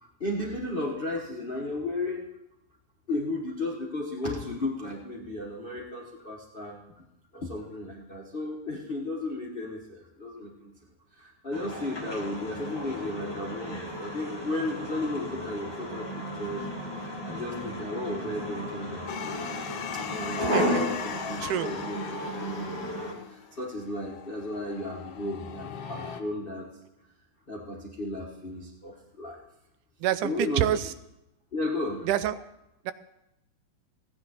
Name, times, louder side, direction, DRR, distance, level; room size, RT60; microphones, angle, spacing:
voice 1, 0.0-2.3 3.1-6.8 7.3-10.7 11.1-16.1 16.4-16.7 17.2-19.1 20.1-23.0 23.3-26.7 27.5-29.4 30.2-30.6 31.5-32.1, left 2 dB, 85° left, -2 dB, 0.4 m, -34 dB
sound 1, 11.5-23.1, equal, 20° left, 0.6 m, -34 dB
sound 2, 19.1-26.2, left 7 dB, 70° left, 1.5 m, -38 dB
voice 2, 20.4-20.8 21.4-21.7 30.0-30.9 32.0-32.5 32.9-33.0, right 11 dB, 90° right, 14 dB, 2.1 m, -27 dB
15.0 x 9.5 x 4.2 m, 0.85 s
omnidirectional pair, 3.5 m